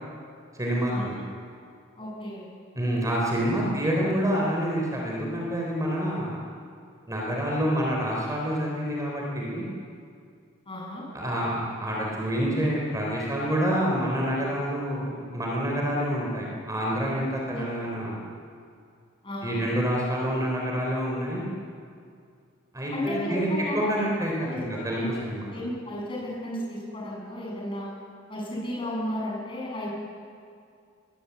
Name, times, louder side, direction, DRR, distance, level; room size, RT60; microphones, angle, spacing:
voice 1, 0.6-1.2 2.8-6.4 7.1-9.7 11.1-18.2 19.4-21.5 22.7-23.5 23.7-25.5, equal, 15° right, -2 dB, 3.8 m, -27 dB
voice 2, 2.0-2.5 10.7-11.1 17.5-17.7 19.2-19.6 22.9-23.9 24.4-25.2 25.5-27.9 28.3-29.9, left 1 dB, 25° left, -3 dB, 7.8 m, -33 dB
22.0 x 20.0 x 8.2 m, 2.3 s
head